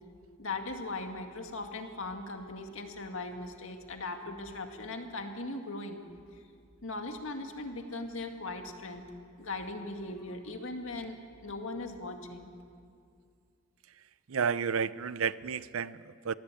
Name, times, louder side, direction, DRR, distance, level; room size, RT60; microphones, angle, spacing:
voice 1, 0.4-6.0 6.8-9.1 9.4-11.2 11.4-12.5, left 2 dB, 70° left, 4 dB, 2.1 m, -39 dB
voice 2, 14.3-16.3, right 6 dB, 75° right, 17 dB, 0.6 m, -31 dB
22.5 x 16.5 x 8.5 m, 2.2 s
head